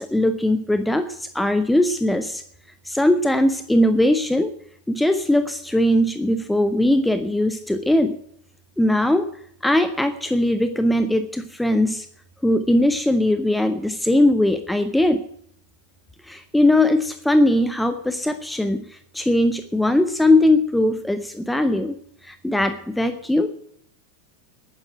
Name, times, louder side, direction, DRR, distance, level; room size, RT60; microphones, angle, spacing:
voice 1, 0.0-2.4 2.8-4.5 4.9-8.2 8.8-9.3 9.6-12.1 12.4-15.2 16.2-21.9 22.2-23.5, left 1 dB, 5° left, 10 dB, 0.8 m, -20 dB
11.5 x 9.3 x 8.9 m, 0.66 s
figure-of-eight pair, 90°, 0 cm